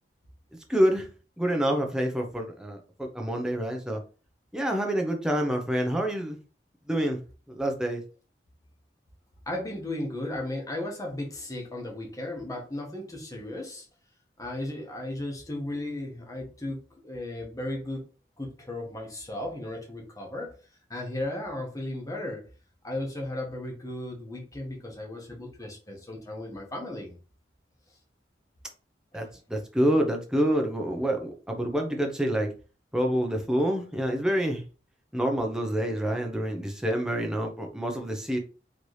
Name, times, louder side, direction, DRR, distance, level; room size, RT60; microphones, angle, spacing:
voice 1, 0.7-1.1 1.4-4.0 4.5-6.4 6.9-7.2 7.5-8.0 29.1-32.5 32.9-34.6 35.1-38.4, equal, 5° right, 2 dB, 0.7 m, -27 dB
voice 2, 9.5-13.9 14.4-16.8 17.0-18.0 18.4-20.5 20.9-22.4 22.8-27.1 29.1-29.3, left 1 dB, 20° left, 0 dB, 1.2 m, -35 dB
4.1 x 3.2 x 3.2 m, 0.35 s
head